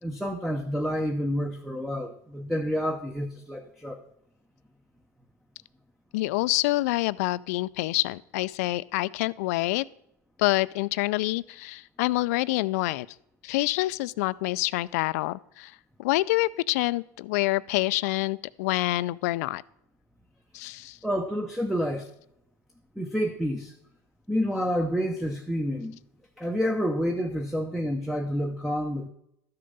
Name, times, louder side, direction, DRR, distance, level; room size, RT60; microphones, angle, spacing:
voice 1, 0.0-4.0 21.0-22.1 23.0-23.7 24.3-26.0 26.4-29.1, equal, ahead, 4 dB, 0.7 m, -29 dB
voice 2, 6.1-9.9 10.4-13.1 13.4-15.7 16.0-19.6 20.5-21.0, left 19 dB, 75° left, 18 dB, 0.4 m, -27 dB
13.0 x 6.7 x 5.4 m, 0.76 s
supercardioid pair, 125°, 8 cm